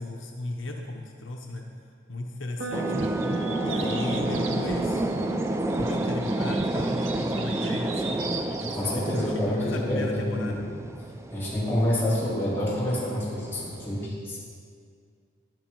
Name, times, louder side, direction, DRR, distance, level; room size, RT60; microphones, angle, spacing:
voice 1, 0.0-1.6 2.1-5.0 5.7-8.2 8.8-10.6, left 2 dB, 70° left, 1 dB, 0.8 m, -36 dB
sound 1, 2.6-10.5, right 4 dB, 60° right, 1.7 m, -41 dB
sound 2, 2.7-14.1, right 1 dB, 15° right, 0.4 m, -30 dB
sound 3, 2.9-9.4, right 5 dB, 85° right, 1.0 m, -40 dB
voice 2, 8.6-10.6 11.0-14.4, left 1 dB, 10° left, -8 dB, 3.3 m, -28 dB
12.0 x 9.5 x 4.5 m, 2.2 s
head